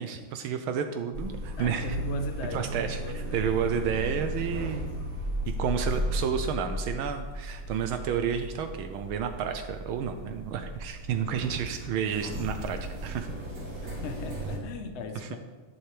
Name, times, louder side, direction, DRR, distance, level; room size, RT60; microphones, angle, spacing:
voice 1, 0.0-1.9 2.5-4.9 5.6-13.3, right 7 dB, 80° right, 7 dB, 1.5 m, -31 dB
sound 1, 1.1-14.6, right 1 dB, 60° right, 3.1 m, -35 dB
voice 2, 1.6-3.5 13.8-15.4, left 4 dB, 50° left, 6 dB, 0.8 m, -39 dB
11.5 x 11.0 x 3.3 m, 1.3 s
omnidirectional pair, 2.4 m